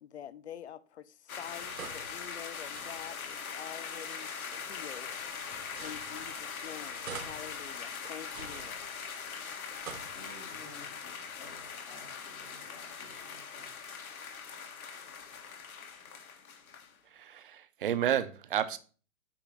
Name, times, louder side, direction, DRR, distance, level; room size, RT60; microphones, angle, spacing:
voice 1, 0.0-5.1 5.8-8.8, left 10 dB, 55° left, 0.5 m, -47 dB
sound 1, 1.3-16.9, left 6 dB, 85° left, 1.6 m, -42 dB
sound 2, 1.4-3.3 4.3-6.6 7.0-9.3 9.6-10.7, right 6 dB, 80° right, 1.5 m, -48 dB
voice 2, 10.0-13.8, left 2 dB, 10° left, 0.5 m, -54 dB
voice 3, 17.1-18.8, right 10 dB, 40° right, 0.5 m, -31 dB
8.7 x 2.9 x 4.8 m
hypercardioid pair, 165°, 41 cm